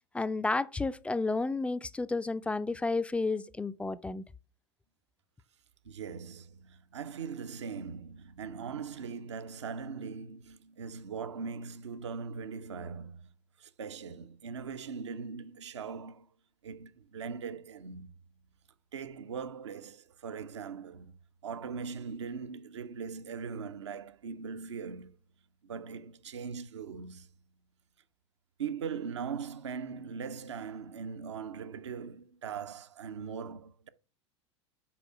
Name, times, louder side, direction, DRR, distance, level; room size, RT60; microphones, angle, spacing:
voice 1, 0.1-4.2, left 3 dB, 10° left, 0.3 m, -31 dB
voice 2, 5.9-13.2 13.6-16.3 16.6-18.1 18.9-21.1 21.4-25.2 25.6-27.3 28.6-33.9, right 6 dB, 70° right, 0.6 m, -40 dB
7.1 x 4.8 x 4.6 m
figure-of-eight pair, 80°, 15 cm